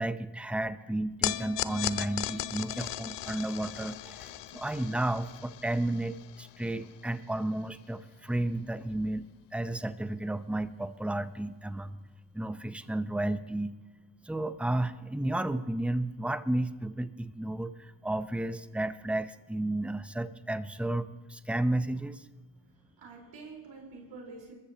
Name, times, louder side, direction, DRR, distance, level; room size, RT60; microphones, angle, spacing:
voice 1, 0.0-9.3 9.5-12.0 12.3-13.7 14.2-22.3, right 1 dB, 5° right, 12 dB, 0.8 m, -32 dB
sound 1, 1.2-7.6, left 13 dB, 65° left, 0.7 m, -37 dB
voice 2, 22.6-24.5, right 3 dB, 80° right, -1 dB, 4.6 m, -47 dB
22.0 x 13.5 x 3.0 m, 1.3 s
supercardioid pair, 55°, 45 cm